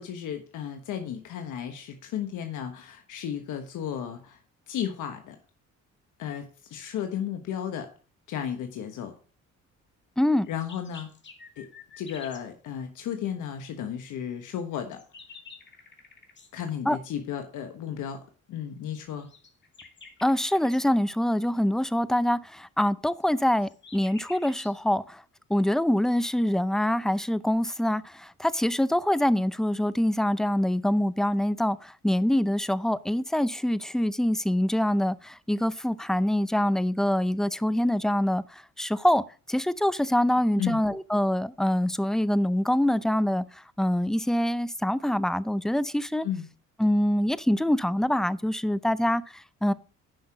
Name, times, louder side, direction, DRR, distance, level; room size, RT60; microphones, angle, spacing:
voice 1, 0.0-4.4 4.7-5.4 6.2-7.9 8.3-9.1 10.5-11.1 11.6-11.7 12.0-15.0 16.5-18.2 18.5-19.3 40.6-40.8 46.2-46.5, left 9 dB, 80° left, 1.3 m, -34 dB
voice 2, 10.2-10.5 16.9-17.0 20.2-25.2 25.5-46.3 46.8-49.7, left 1 dB, ahead, 0.5 m, -25 dB
sound 1, 10.4-12.5 14.5-16.5 19.2-20.8 23.2-24.8, left 4 dB, 35° left, 2.1 m, -49 dB
10.5 x 5.7 x 4.8 m
cardioid pair, 90°, 30 cm